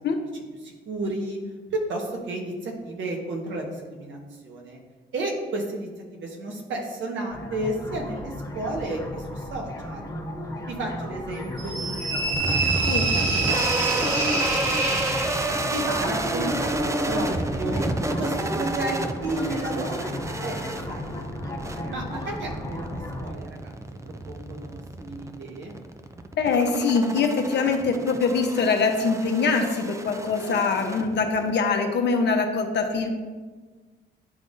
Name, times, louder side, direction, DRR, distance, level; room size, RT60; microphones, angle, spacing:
voice 1, 0.3-1.4 1.7-4.8 5.1-10.1 10.7-12.6 13.1-14.9 15.1-15.3 15.7-17.8 18.2-21.1 21.8-22.9 23.2-23.7 24.0-25.7, right 2 dB, 70° right, 0 dB, 1.4 m, -33 dB
sound 1, 7.3-23.3, left 1 dB, 20° left, 1.4 m, -35 dB
sound 2, 11.6-15.7, right 3 dB, 85° right, 1.7 m, -26 dB
sound 3, 12.3-31.5, right 2 dB, 15° right, 0.4 m, -30 dB
voice 2, 26.4-33.1, left 4 dB, 60° left, 4 dB, 0.9 m, -23 dB
10.5 x 3.5 x 2.6 m, 1.4 s
cardioid pair, 90°, 20 cm